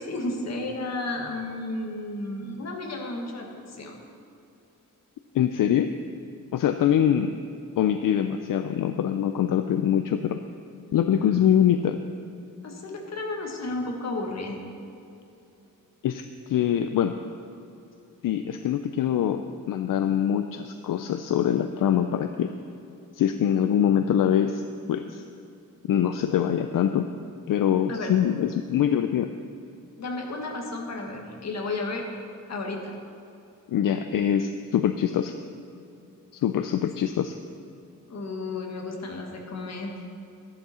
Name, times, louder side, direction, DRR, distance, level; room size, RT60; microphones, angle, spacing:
voice 1, 0.0-4.0 11.1-11.5 12.6-14.6 27.9-28.1 30.0-32.0 32.5-32.9 38.1-39.9, left 2 dB, 50° left, 1 dB, 1.6 m, -33 dB
voice 2, 5.3-5.9 6.5-7.3 7.8-10.4 10.9-12.0 16.0-17.1 18.2-19.4 19.7-22.5 23.2-24.6 24.9-25.2 25.9-27.1 27.5-29.3 33.7-35.4 36.4-37.4, left 9 dB, 75° left, 8 dB, 0.5 m, -24 dB
13.0 x 10.5 x 4.3 m, 2.7 s
wide cardioid pair, 175°, 33 cm